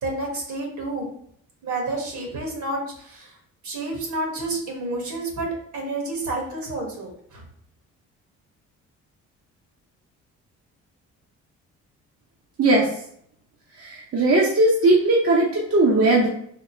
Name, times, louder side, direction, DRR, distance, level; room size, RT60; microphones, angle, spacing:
voice 1, 0.0-1.1 1.6-3.3 3.6-7.4, right 2 dB, 75° right, 0 dB, 1.4 m, -30 dB
voice 2, 13.8-16.3, right 2 dB, 50° right, -3 dB, 0.8 m, -18 dB
3.6 x 2.0 x 4.3 m, 0.67 s
cardioid pair, 90°, 30 cm